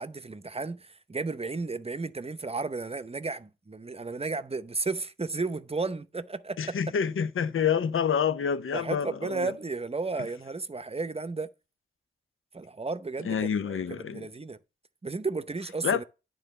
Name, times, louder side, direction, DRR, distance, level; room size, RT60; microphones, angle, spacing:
voice 1, 0.0-6.8 8.7-11.5 12.5-14.6 15.0-16.0, right 3 dB, 30° right, 0.7 m, -33 dB
voice 2, 6.6-9.5 13.2-14.3 15.8-16.0, left 7 dB, 75° left, 0.7 m, -28 dB
9.9 x 3.9 x 6.5 m
cardioid pair, 40°, 21 cm